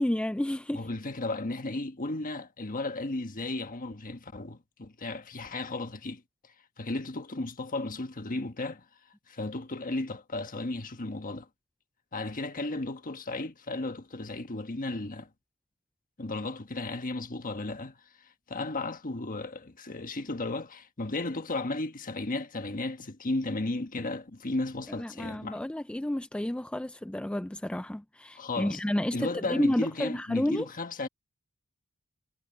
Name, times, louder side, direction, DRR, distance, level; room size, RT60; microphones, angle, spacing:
voice 1, 0.0-0.9 25.0-30.6, left 1 dB, 5° left, 0.3 m, -31 dB
voice 2, 0.7-8.8 9.3-11.5 12.1-15.3 16.2-25.6 28.3-28.8 29.1-31.1, left 2 dB, 40° left, 1.3 m, -34 dB
head